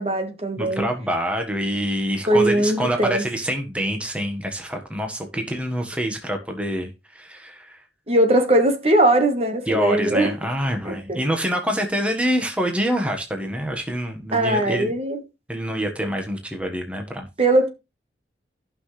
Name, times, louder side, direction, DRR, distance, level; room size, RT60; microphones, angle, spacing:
voice 1, 0.0-0.9 2.3-3.2 8.1-10.3 10.8-11.2 14.3-15.2 17.4-17.7, right 1 dB, 35° right, 1.4 m, -20 dB
voice 2, 0.6-7.8 9.7-14.9 15.5-17.3, equal, 5° right, 1.4 m, -26 dB
14.5 x 6.0 x 3.3 m
head